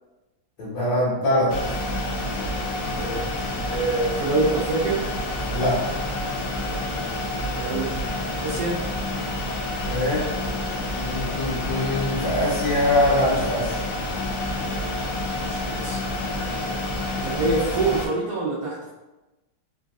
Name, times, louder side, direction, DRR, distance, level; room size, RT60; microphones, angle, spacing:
voice 1, 0.6-1.5 5.5-6.3 9.8-10.3 11.0-13.8, left 1 dB, 70° left, -11 dB, 1.8 m, -23 dB
sound 1, 1.5-18.1, left 1 dB, 85° left, 0.8 m, -28 dB
voice 2, 2.9-3.3 3.7-5.0 7.6-7.9 8.3-8.8 15.5-16.0 17.2-18.9, right 3 dB, 70° right, -7 dB, 0.9 m, -25 dB
3.9 x 2.5 x 2.3 m, 1.1 s
omnidirectional pair, 2.2 m